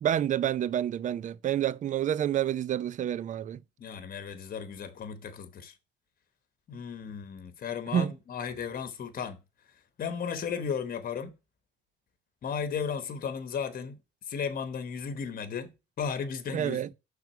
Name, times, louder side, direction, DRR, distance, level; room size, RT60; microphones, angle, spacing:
voice 1, 0.0-3.6 7.9-8.1 16.5-16.9, right 10 dB, 40° right, 0.4 m, -28 dB
voice 2, 3.8-5.7 6.7-9.4 10.0-11.3 12.4-14.0 14.3-16.9, left 6 dB, 45° left, 1.0 m, -35 dB
5.9 x 3.9 x 5.9 m
cardioid pair, 95°, 20 cm